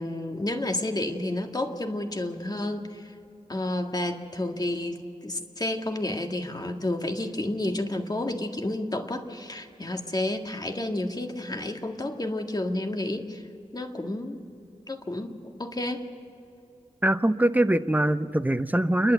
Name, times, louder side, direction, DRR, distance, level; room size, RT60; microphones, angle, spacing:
voice 1, 0.0-3.1 3.5-13.4 13.7-14.4 14.9-16.1, left 1 dB, 30° left, 4 dB, 1.8 m, -30 dB
voice 2, 17.0-19.1, right 1 dB, 15° right, 12 dB, 0.7 m, -23 dB
29.0 x 11.5 x 8.0 m, 2.6 s
cardioid pair, 60°, 13 cm